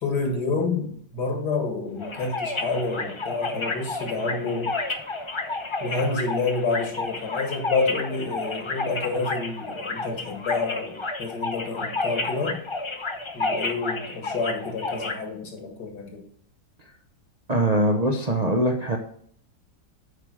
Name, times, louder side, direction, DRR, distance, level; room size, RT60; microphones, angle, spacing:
voice 1, 0.0-4.7 5.8-12.6 13.3-16.2, left 4 dB, 75° left, 3 dB, 2.3 m, -28 dB
sound 1, 2.0-15.1, left 3 dB, 40° left, 0.4 m, -31 dB
voice 2, 17.5-19.0, right 1 dB, 40° right, 1 dB, 0.6 m, -22 dB
8.0 x 4.9 x 6.1 m, 0.62 s
omnidirectional pair, 1.8 m